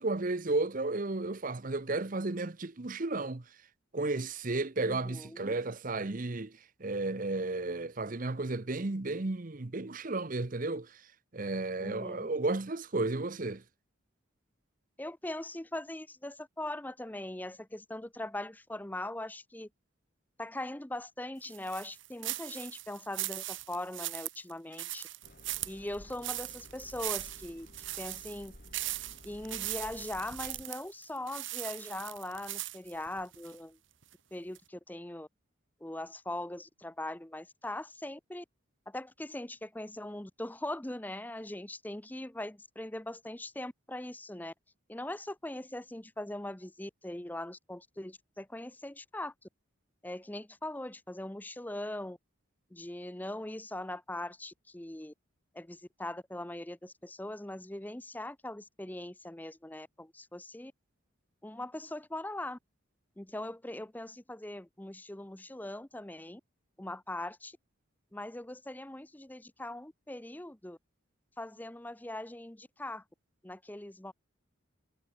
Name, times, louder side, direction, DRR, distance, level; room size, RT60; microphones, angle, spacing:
voice 1, 0.0-3.4 3.9-11.0 11.3-13.6, right 2 dB, 40° right, 0.8 m, -33 dB
voice 2, 4.8-5.5 11.8-12.3 15.0-19.7 20.4-25.1 25.7-27.7 28.0-28.5 29.2-33.8 34.3-35.3 35.8-38.4 38.9-44.5 44.9-49.5 50.0-52.2 52.7-55.1 55.5-60.7 61.4-62.6 63.2-66.4 66.8-67.6 68.1-70.8 71.4-73.0 73.4-74.1, left 1 dB, 10° left, 0.6 m, -41 dB
sound 1, 21.5-33.6 34.0-34.1 34.6-34.7, right 15 dB, 65° right, 2.6 m, -39 dB
sound 2, 25.2-30.7, left 1 dB, 45° left, 4.3 m, -54 dB
head